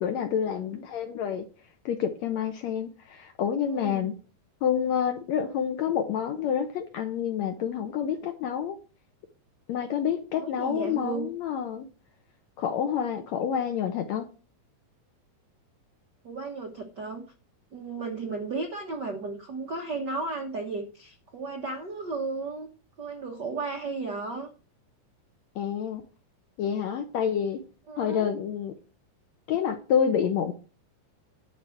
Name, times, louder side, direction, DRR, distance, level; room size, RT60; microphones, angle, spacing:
voice 1, 0.0-1.4 1.8-4.2 4.6-8.8 9.7-11.9 12.6-14.3 25.5-26.0 26.6-27.6 28.0-28.8 29.5-30.5, left 8 dB, 75° left, 7 dB, 1.6 m, -28 dB
voice 2, 3.7-4.2 10.3-11.3 16.2-17.2 17.7-22.7 23.0-24.5 27.9-28.3, right 3 dB, 85° right, 4 dB, 0.9 m, -34 dB
11.0 x 4.8 x 7.7 m, 0.35 s
omnidirectional pair, 4.1 m